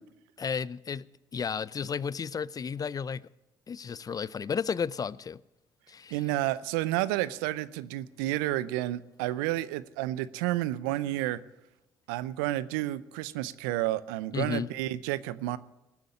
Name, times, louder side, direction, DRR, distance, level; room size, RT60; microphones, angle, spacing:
voice 1, 0.4-1.0 1.3-3.2 3.7-5.4 5.9-6.2 14.3-14.7, left 6 dB, 35° left, 0.5 m, -33 dB
voice 2, 6.1-11.4 12.1-15.6, right 15 dB, 75° right, 0.6 m, -30 dB
20.0 x 7.7 x 8.5 m
hypercardioid pair, 55°, 11 cm